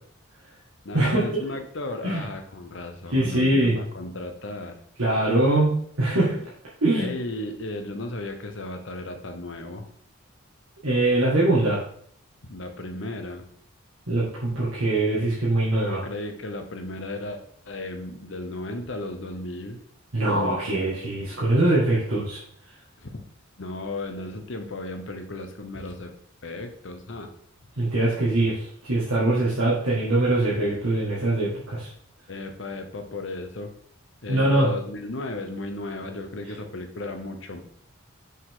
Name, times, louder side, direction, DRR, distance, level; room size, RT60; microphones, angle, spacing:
voice 1, 0.8-4.8 6.9-9.9 12.4-13.5 15.9-19.8 22.0-22.1 23.0-23.2 23.6-26.2 26.4-27.3 32.3-33.7 34.2-37.6, left 2 dB, 60° left, 6 dB, 0.9 m, -35 dB
voice 2, 3.1-3.8 5.0-6.4 6.8-7.1 10.8-11.8 14.1-16.0 20.1-22.4 27.8-31.9 34.3-34.7, right 2 dB, 90° right, -7 dB, 1.9 m, -22 dB
6.3 x 5.3 x 3.8 m, 0.62 s
head